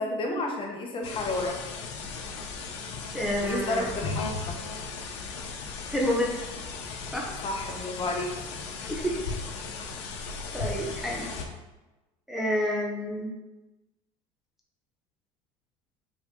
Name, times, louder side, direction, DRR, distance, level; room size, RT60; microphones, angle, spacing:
voice 1, 0.0-1.6 3.4-4.6 7.4-8.5, left 2 dB, 35° left, 1 dB, 1.3 m, -31 dB
sound 1, 1.0-11.5, left 4 dB, 85° left, 0.9 m, -36 dB
voice 2, 3.1-3.9 5.9-6.5 7.1-7.3 8.8-9.2 10.5-11.3 12.3-13.3, equal, ahead, -3 dB, 1.0 m, -29 dB
6.8 x 4.1 x 3.8 m, 1.1 s
supercardioid pair, 110°, 15 cm